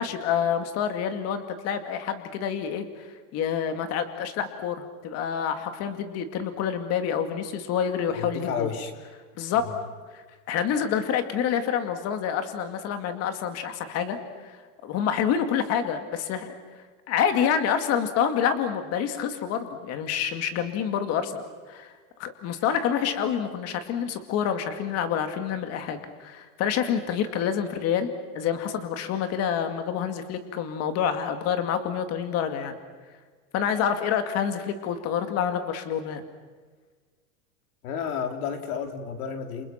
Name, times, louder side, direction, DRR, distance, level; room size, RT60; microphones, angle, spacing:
voice 1, 0.0-3.1 3.3-8.7 9.4-9.7 10.1-14.6 14.8-16.6 17.1-21.4 21.7-21.9 22.2-28.1 28.3-32.8 33.5-36.2, left 8 dB, 35° left, 8 dB, 2.4 m, -27 dB
voice 2, 8.1-8.9 9.5-9.8 37.8-39.7, left 7 dB, 85° left, 6 dB, 3.8 m, -32 dB
29.0 x 28.5 x 6.0 m, 1.5 s
supercardioid pair, 165°, 43 cm